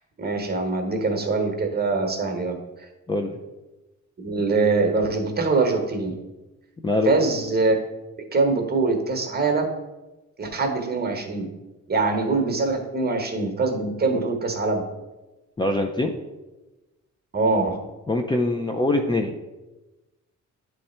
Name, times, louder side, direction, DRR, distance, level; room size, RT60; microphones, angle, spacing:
voice 1, 0.2-2.6 4.2-6.2 7.0-7.8 8.3-9.7 10.4-11.5 11.9-14.8 17.3-17.8, right 3 dB, 30° right, 4 dB, 1.1 m, -23 dB
voice 2, 15.6-16.2 18.1-19.4, left 2 dB, 15° left, 3 dB, 0.4 m, -23 dB
9.7 x 3.3 x 4.3 m, 1.1 s
cardioid pair, 120°, 30 cm